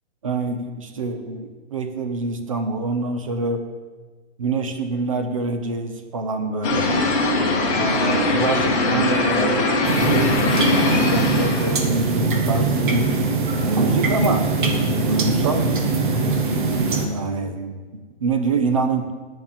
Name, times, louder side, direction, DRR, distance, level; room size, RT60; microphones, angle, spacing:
voice 1, 0.2-3.6 4.4-7.0 7.7-9.7 10.0-13.1 13.6-15.7 17.1-17.8 18.2-19.1, right 3 dB, 30° right, 8 dB, 0.6 m, -26 dB
sound 1, 6.6-11.9, left 2 dB, 30° left, 1.9 m, -21 dB
sound 2, 9.8-17.1, right 3 dB, 45° right, 1.2 m, -22 dB
9.8 x 5.5 x 7.2 m, 1.4 s
hypercardioid pair, 180°, 34 cm